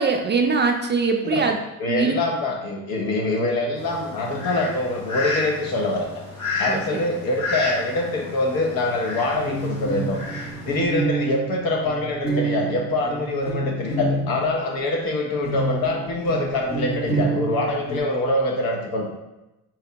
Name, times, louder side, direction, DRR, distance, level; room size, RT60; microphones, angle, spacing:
voice 1, 0.0-1.6 1.9-2.2 6.7-7.0, right 4 dB, 30° right, 4 dB, 0.4 m, -22 dB
voice 2, 1.8-6.1 6.6-10.2 10.6-19.1, left 2 dB, 65° left, 0 dB, 1.0 m, -24 dB
Fowl, 3.7-10.8, left 3 dB, 90° left, 1.4 m, -31 dB
sound 1, 9.3-15.1 15.4-18.0, right 2 dB, 25° left, 1.0 m, -28 dB
3.4 x 2.8 x 3.3 m, 0.97 s
hypercardioid pair, 60°, 39 cm